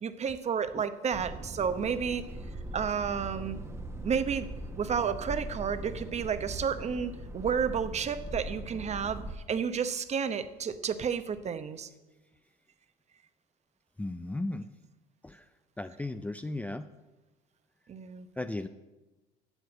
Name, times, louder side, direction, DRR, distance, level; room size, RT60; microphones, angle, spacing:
voice 1, 0.0-2.3 2.7-3.6 4.0-4.5 4.8-9.2 9.5-11.9 17.9-18.3, right 7 dB, 35° right, 12 dB, 0.9 m, -31 dB
sound 1, 1.1-9.3, right 1 dB, 15° right, 1.1 m, -40 dB
voice 2, 14.0-14.7 15.2-15.4 15.8-16.9 18.4-18.7, left 2 dB, 10° left, 10 dB, 0.4 m, -35 dB
8.1 x 7.7 x 8.3 m, 1.1 s
supercardioid pair, 85°, 19 cm